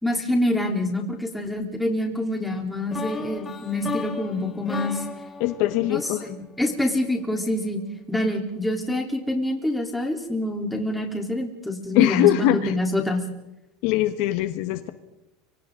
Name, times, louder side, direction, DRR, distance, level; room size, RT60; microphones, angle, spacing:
voice 1, 0.0-5.0 5.9-7.8 8.1-13.2, left 1 dB, 5° left, 1 dB, 3.7 m, -26 dB
sound 1, 2.9-6.9, left 5 dB, 20° left, 2.4 m, -35 dB
voice 2, 5.4-6.2 11.9-12.7 13.8-14.9, left 15 dB, 60° left, 9 dB, 1.4 m, -21 dB
29.5 x 25.0 x 3.9 m, 0.94 s
supercardioid pair, 135°, 0 cm